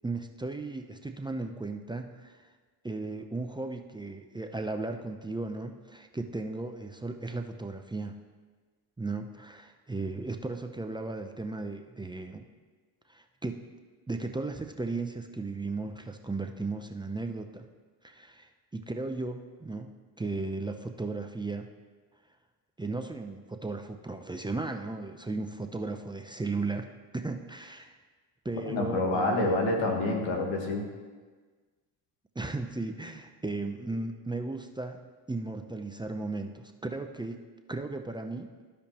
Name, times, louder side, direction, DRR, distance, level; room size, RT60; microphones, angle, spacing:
voice 1, 0.0-2.5 2.8-8.1 9.0-12.5 13.1-13.7 14.1-17.7 18.0-21.7 22.8-26.9 27.1-27.9 28.4-29.6 32.4-35.0 35.3-37.4 37.7-38.5, right 3 dB, 10° right, 5 dB, 0.5 m, -36 dB
voice 2, 28.7-30.9, left 2 dB, 85° left, 2 dB, 1.4 m, -27 dB
13.5 x 5.1 x 2.9 m, 1.4 s
supercardioid pair, 70°, 44 cm